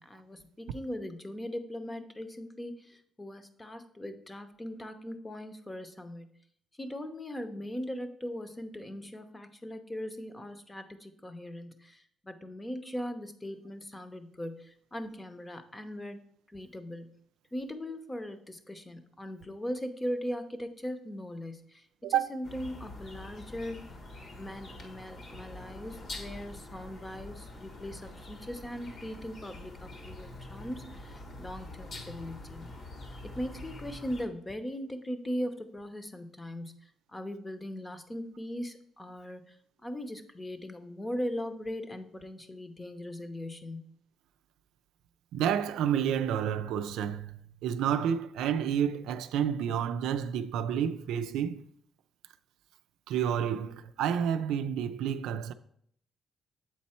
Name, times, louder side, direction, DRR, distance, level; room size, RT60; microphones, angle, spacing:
voice 1, 0.0-6.3 6.8-16.2 16.5-17.1 17.5-21.8 22.1-23.8 24.4-32.7 33.2-36.8 37.1-39.4 39.8-43.9, equal, 20° left, 0.8 m, -39 dB
voice 2, 22.0-22.4 45.3-51.6 53.1-55.5, right 9 dB, 90° right, 0.4 m, -30 dB
sound 1, 22.4-34.3, left 2 dB, 55° left, 1.3 m, -45 dB
7.5 x 4.2 x 4.3 m
cardioid pair, 90°, 0 cm